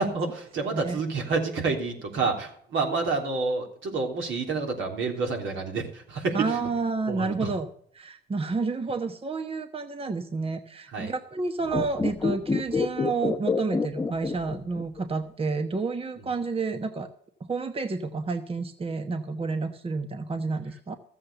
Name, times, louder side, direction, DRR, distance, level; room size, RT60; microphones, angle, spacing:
voice 1, 0.0-6.6 7.1-7.5 10.9-11.1, right 4 dB, 75° right, 2 dB, 3.3 m, -28 dB
voice 2, 0.6-1.0 2.8-3.0 6.3-17.1 17.5-21.0, right 4 dB, 30° right, 8 dB, 1.0 m, -30 dB
sound 1, 11.6-15.0 15.3-15.4, left 4 dB, 15° left, 1.1 m, -27 dB
13.5 x 7.6 x 6.8 m, 0.63 s
cardioid pair, 90°, 20 cm